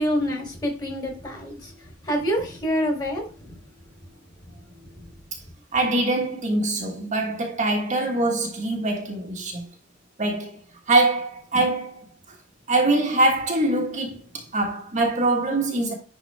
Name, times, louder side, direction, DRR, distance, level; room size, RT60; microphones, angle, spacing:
voice 1, 0.0-1.7 2.0-3.6 4.9-5.1, equal, 20° left, 3.3 m, -27 dB
voice 2, 5.7-9.7 10.2-10.6 10.9-12.1 12.7-15.9, right 2 dB, 40° right, 1.5 m, -23 dB
10.5 x 4.2 x 3.4 m
head